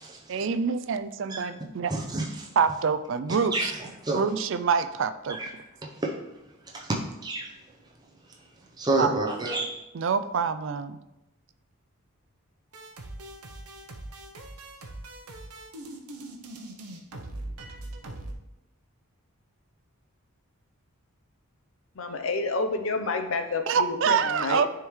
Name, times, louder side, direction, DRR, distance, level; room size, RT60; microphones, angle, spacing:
voice 1, 0.3-1.9 2.6-3.7 4.2-5.4 9.0-9.3 9.9-11.0 23.7-24.7, right 6 dB, 55° right, 11 dB, 0.4 m, -26 dB
voice 2, 1.9-2.5 3.5-4.2 5.3-5.5 5.8-6.2 6.7-7.5 8.3-8.4 8.8-9.8, right 2 dB, 20° right, -2 dB, 0.7 m, -29 dB
sound 1, 12.7-18.3, right 1 dB, 90° right, 0.8 m, -41 dB
voice 3, 22.0-24.6, left 3 dB, 65° left, 6 dB, 0.6 m, -29 dB
10.0 x 3.6 x 3.1 m, 0.94 s
head